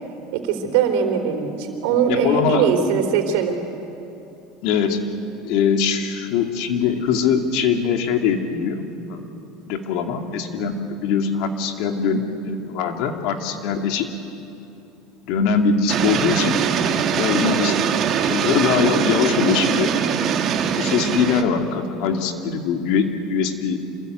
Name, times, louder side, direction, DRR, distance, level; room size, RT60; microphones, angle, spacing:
voice 1, 0.3-3.6 17.4-17.8, right 7 dB, 75° right, 5 dB, 3.7 m, -21 dB
voice 2, 2.0-2.7 4.6-5.0 5.4-8.8 9.1-9.3 9.7-14.1 15.3-16.6 17.2-17.8 18.3-19.9 20.8-23.8, left 6 dB, 65° left, 5 dB, 2.5 m, -22 dB
sound 1, 15.9-21.4, right 7 dB, 45° right, 2.0 m, -22 dB
27.0 x 21.0 x 9.4 m, 2.9 s
supercardioid pair, 115°, 0 cm